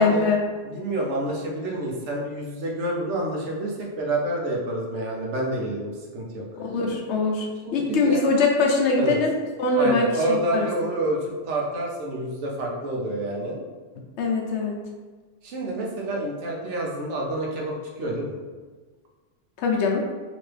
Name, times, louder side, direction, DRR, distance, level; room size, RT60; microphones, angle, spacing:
voice 1, 0.0-0.5 6.6-9.3 9.6-10.7 14.2-14.8 19.6-20.0, left 3 dB, 70° left, 0 dB, 0.9 m, -22 dB
voice 2, 0.6-6.4 7.6-8.2 9.0-9.2 9.8-13.6 15.4-18.3, right 1 dB, 75° right, -2 dB, 1.0 m, -28 dB
3.0 x 2.6 x 3.2 m, 1.4 s
omnidirectional pair, 1.2 m